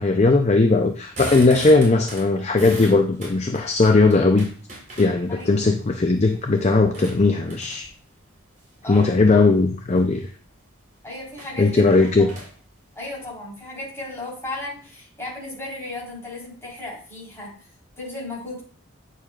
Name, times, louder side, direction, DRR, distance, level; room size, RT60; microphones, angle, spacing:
voice 1, 0.0-4.5 5.0-7.9 8.9-10.3 11.6-12.3, left 3 dB, 30° left, 5 dB, 0.5 m, -18 dB
sound 1, 0.9-5.5 6.0-8.0 8.8-9.2 9.7-10.1 10.5-10.6 10.8-10.9 11.3-13.3, right 2 dB, 40° right, 3.6 m, -39 dB
voice 2, 8.8-9.4 11.0-12.3 12.9-17.6 18.0-18.6, left 2 dB, 15° left, -6 dB, 3.8 m, -35 dB
8.9 x 6.7 x 2.4 m, 0.42 s
head